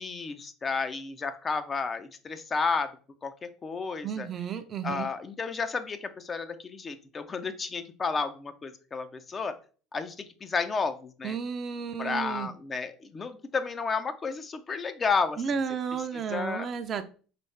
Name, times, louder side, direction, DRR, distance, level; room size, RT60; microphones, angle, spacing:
voice 1, 0.0-2.9 3.2-4.3 4.8-9.6 9.9-11.4 12.0-15.6 16.1-16.7, left 4 dB, 30° left, 9 dB, 0.5 m, -32 dB
voice 2, 4.0-5.1 11.2-12.5 15.4-17.1, right 6 dB, 40° right, 9 dB, 0.5 m, -32 dB
4.2 x 3.1 x 3.3 m, 0.38 s
hypercardioid pair, 65°, 0 cm